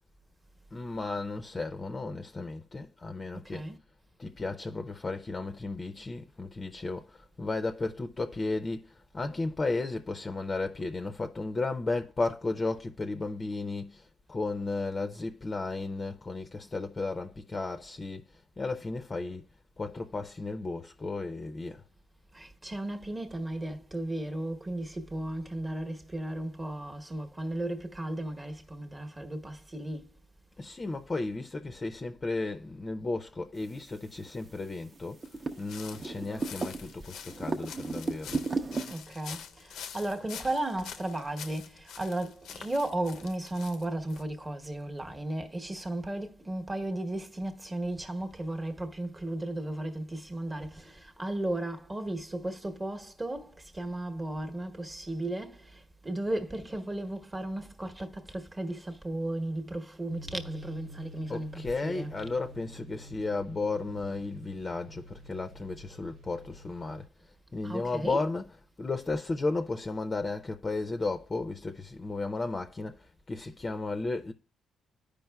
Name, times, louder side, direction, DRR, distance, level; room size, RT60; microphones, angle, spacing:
voice 1, 0.7-3.7 4.2-19.5 19.8-21.8 30.6-35.2 35.6-38.4 61.3-67.1 67.5-74.3, left 3 dB, 30° left, 0.5 m, -34 dB
voice 2, 3.4-3.8 22.3-30.1 35.9-36.1 38.9-62.1 67.6-68.3, right 1 dB, 20° right, 1.0 m, -35 dB
sound 1, 33.8-33.9 34.1-34.6 35.0-36.9 37.3-38.9, right 3 dB, 35° right, 0.6 m, -34 dB
sound 2, 35.2-44.2, left 8 dB, 80° left, 0.5 m, -46 dB
sound 3, 60.1-67.1, right 1 dB, 70° right, 0.6 m, -49 dB
13.0 x 5.0 x 2.3 m
cardioid pair, 90°, 0 cm